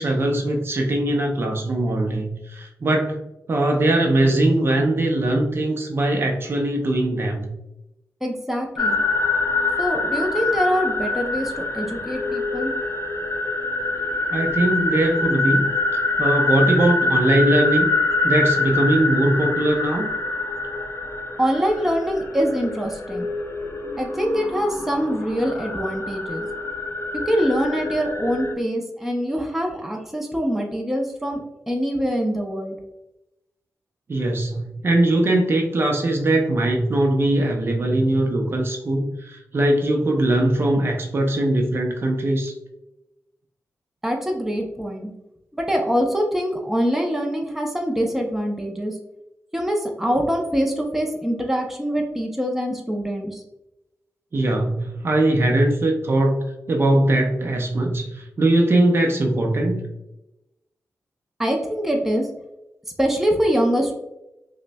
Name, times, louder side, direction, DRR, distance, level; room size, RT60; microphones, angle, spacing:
voice 1, 0.0-7.5 14.3-15.7 15.9-17.9 18.2-20.1 34.1-42.5 54.3-59.9, right 1 dB, 45° right, 1 dB, 0.6 m, -21 dB
voice 2, 8.2-9.0 9.8-12.7 21.4-23.3 24.0-26.5 27.3-31.4 31.7-32.8 44.0-45.1 45.5-48.9 49.5-53.4 61.4-62.3 63.0-63.9, equal, 5° right, 1 dB, 0.5 m, -24 dB
sound 1, 8.8-28.5, left 2 dB, 50° left, 0.7 m, -25 dB
5.2 x 2.1 x 2.2 m, 0.92 s
wide cardioid pair, 90°, 5 cm